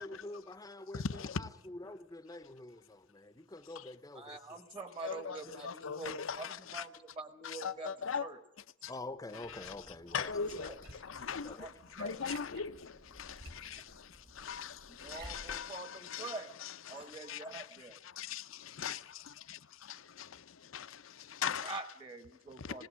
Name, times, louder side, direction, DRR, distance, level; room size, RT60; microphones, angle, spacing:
voice 1, 0.0-1.0 1.4-4.6 5.4-5.6 8.9-10.7 11.4-11.6, left 2 dB, 20° left, 0.7 m, -47 dB
voice 2, 0.9-1.5 3.8-3.9 5.0-6.9 7.4-8.3 8.8-8.9 9.3-21.8 22.6-22.9, left 6 dB, 75° left, 0.7 m, -41 dB
voice 3, 4.1-6.5 6.7-7.9 8.2-8.4 10.1-10.2 10.6-10.7 11.6-11.7 12.0-12.2 15.0-16.5 16.9-18.0 21.6-22.8, right 3 dB, 25° right, 1.1 m, -45 dB
Liquid, 9.4-15.6, right 2 dB, 50° right, 1.8 m, -54 dB
20.0 x 18.0 x 7.5 m
head